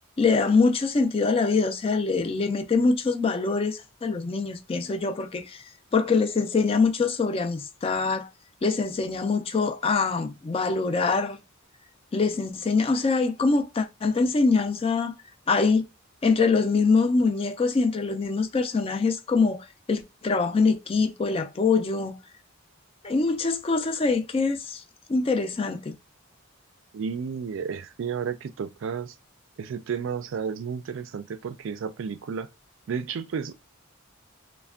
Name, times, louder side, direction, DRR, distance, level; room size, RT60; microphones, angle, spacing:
voice 1, 0.2-8.3 8.6-11.4 12.1-15.1 15.5-15.8 16.2-22.2 23.0-24.8 25.1-25.9, left 4 dB, 25° left, 0.3 m, -24 dB
voice 2, 26.9-29.1 29.6-32.5 32.9-33.5, right 6 dB, 60° right, 0.3 m, -32 dB
3.2 x 2.1 x 2.3 m
head